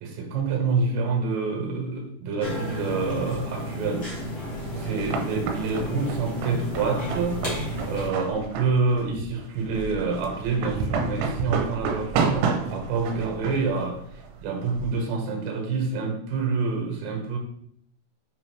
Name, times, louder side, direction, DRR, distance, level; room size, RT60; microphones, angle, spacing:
voice 1, 0.0-4.1 4.8-7.5 7.9-17.4, right 4 dB, 70° right, 2 dB, 3.2 m, -27 dB
sound 1, 2.4-8.1, equal, 70° left, 0.9 m, -32 dB
sound 2, 4.5-15.0, right 5 dB, 90° right, 3.4 m, -30 dB
8.5 x 2.9 x 4.5 m, 0.68 s
omnidirectional pair, 5.9 m